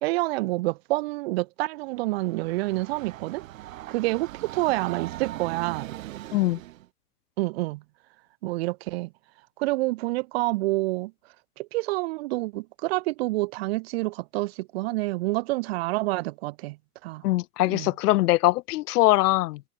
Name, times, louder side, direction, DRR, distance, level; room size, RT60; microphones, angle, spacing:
voice 1, 0.0-3.4 3.9-5.9 7.4-7.8 8.4-9.1 9.6-11.1 11.6-16.8 17.0-17.2 17.7-17.9, right 21 dB, 40° right, 2.6 m, -28 dB
Train, 1.9-6.9, right 15 dB, 60° right, 7.6 m, -40 dB
voice 2, 17.2-19.6, left 18 dB, 90° left, 0.7 m, -22 dB
supercardioid pair, 180°, 45 cm